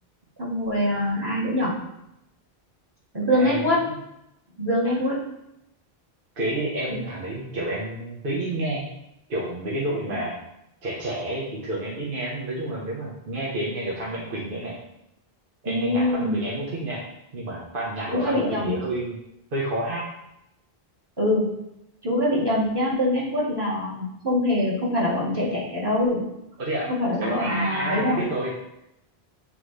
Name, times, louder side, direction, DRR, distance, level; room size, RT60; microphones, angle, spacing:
voice 1, 0.4-1.8 3.1-3.8 4.6-5.2 10.0-10.2 15.7-16.4 18.1-18.7 21.2-21.4 22.0-26.2 26.9-28.3, left 1 dB, 25° right, -7 dB, 2.0 m, -24 dB
voice 2, 3.3-4.0 6.4-8.8 9.3-10.3 10.8-14.7 15.6-17.0 17.3-19.2 19.5-20.0 26.6-26.9 27.2-28.5, right 1 dB, 60° right, -5 dB, 1.2 m, -29 dB
8.5 x 3.7 x 3.2 m, 0.85 s
omnidirectional pair, 1.0 m